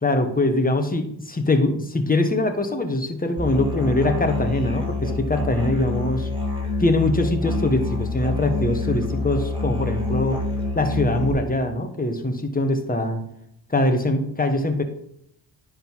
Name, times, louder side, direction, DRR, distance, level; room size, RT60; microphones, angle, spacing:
voice 1, 0.0-6.3 6.8-10.4 10.7-13.2 13.7-14.8, left 2 dB, 15° left, 5 dB, 1.4 m, -22 dB
Musical instrument, 3.4-11.3, left 3 dB, 10° right, 3.3 m, -27 dB
10.0 x 4.0 x 4.7 m, 0.75 s
cardioid pair, 60°, 50 cm